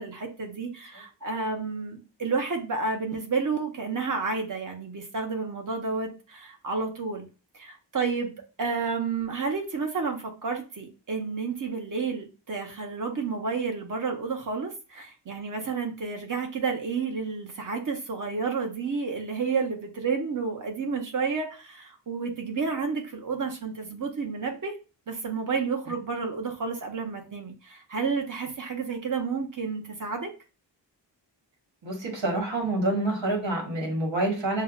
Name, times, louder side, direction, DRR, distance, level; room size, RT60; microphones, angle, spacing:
voice 1, 0.0-7.3 7.5-24.7 25.1-30.3, right 4 dB, 45° right, 3 dB, 0.9 m, -31 dB
voice 2, 31.8-34.6, right 2 dB, 85° right, 0 dB, 1.5 m, -27 dB
6.5 x 2.2 x 2.4 m, 0.33 s
wide cardioid pair, 150°, 44 cm